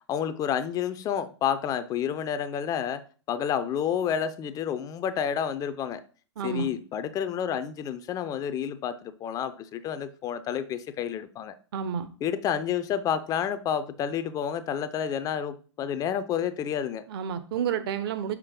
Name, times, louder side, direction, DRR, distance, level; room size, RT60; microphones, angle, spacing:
voice 1, 0.1-3.0 3.3-6.0 6.4-11.5 12.2-17.0, left 8 dB, 25° left, 0.5 m, -29 dB
voice 2, 6.4-6.7 11.7-12.1 17.1-18.4, right 8 dB, 50° right, 1.0 m, -30 dB
6.3 x 6.0 x 3.7 m
figure-of-eight pair, 105°, 15 cm